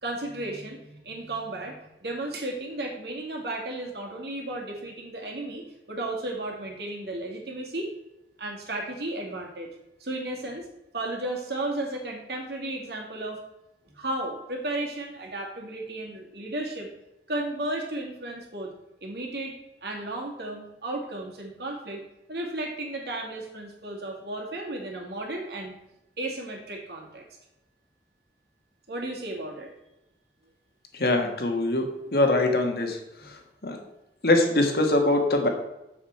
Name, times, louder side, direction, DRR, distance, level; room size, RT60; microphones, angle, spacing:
voice 1, 0.0-7.9 8.4-9.7 10.0-10.7 10.9-13.4 13.9-16.9 17.3-18.7 19.0-22.0 22.3-25.8 26.2-27.2 28.9-29.7 33.2-33.3, right 2 dB, 70° right, 0 dB, 2.2 m, -34 dB
voice 2, 31.0-31.8 32.1-33.0 33.6-33.8 34.2-35.5, left 2 dB, 60° left, 4 dB, 1.5 m, -22 dB
7.4 x 7.4 x 4.7 m, 0.91 s
head